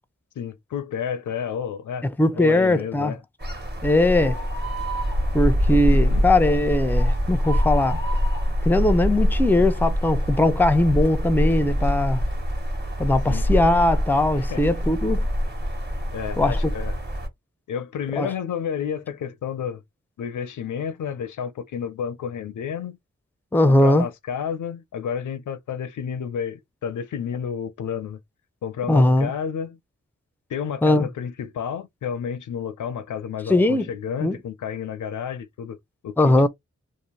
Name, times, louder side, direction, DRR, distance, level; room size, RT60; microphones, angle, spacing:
voice 1, 0.4-2.1 2.3-3.2 5.7-6.3 13.3-13.5 14.4-14.6 16.1-17.0 17.7-19.8 20.2-23.0 23.7-28.2 28.6-29.8 30.5-35.8 36.0-36.5, left 7 dB, 85° left, 0.5 m, -31 dB
voice 2, 2.2-3.1 3.8-4.4 5.3-8.0 8.6-12.2 13.0-15.3 16.4-16.6 18.2-18.3 23.5-24.1 28.9-29.3 30.8-31.1 33.5-33.9 34.2-34.4 36.2-36.5, left 1 dB, 5° left, 0.4 m, -20 dB
sound 1, 3.4-17.3, equal, 35° right, 1.2 m, -24 dB
2.6 x 2.1 x 3.0 m
cardioid pair, 55°, 30 cm